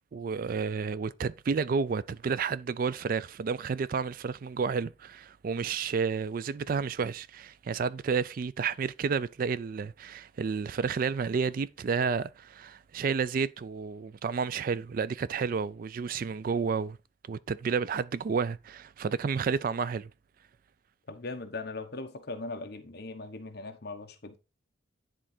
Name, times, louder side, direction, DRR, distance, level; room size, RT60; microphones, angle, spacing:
voice 1, 0.1-17.0 17.3-20.1, right 5 dB, 45° right, 0.3 m, -31 dB
voice 2, 21.1-24.4, left 3 dB, 55° left, 1.1 m, -39 dB
10.0 x 3.7 x 4.3 m
head